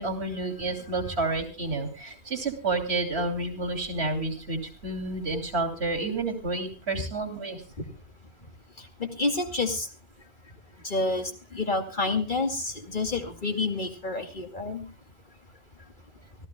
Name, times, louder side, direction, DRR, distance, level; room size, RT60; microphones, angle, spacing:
voice 1, 0.0-7.6, right 3 dB, 75° right, 5 dB, 3.2 m, -30 dB
voice 2, 9.0-9.9 10.8-14.9, left 3 dB, 45° left, 4 dB, 2.5 m, -29 dB
25.5 x 15.0 x 2.2 m, 0.32 s
omnidirectional pair, 1.1 m